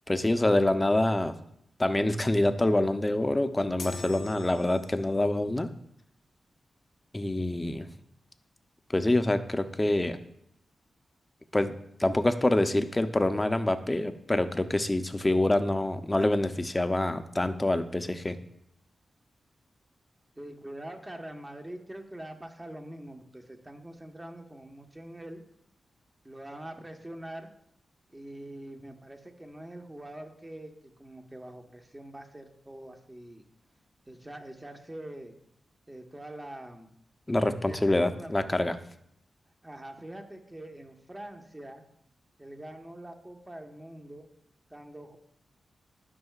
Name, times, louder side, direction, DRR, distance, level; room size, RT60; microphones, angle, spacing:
voice 1, 0.1-1.3 1.8-5.7 7.1-7.9 8.9-10.2 11.5-11.7 12.0-18.4 37.3-38.8, left 1 dB, 20° left, 9 dB, 0.7 m, -26 dB
sound 1, 3.8-5.3, left 5 dB, 65° left, 0.6 m, -43 dB
voice 2, 20.4-25.4 26.2-27.5 28.1-33.4 34.1-35.3 35.9-36.9 37.5-37.8 38.1-38.7 39.6-41.8 42.4-44.3 44.7-45.2, right 1 dB, 20° right, 4 dB, 1.3 m, -44 dB
12.5 x 5.6 x 2.4 m, 0.73 s
cardioid pair, 55°, 0 cm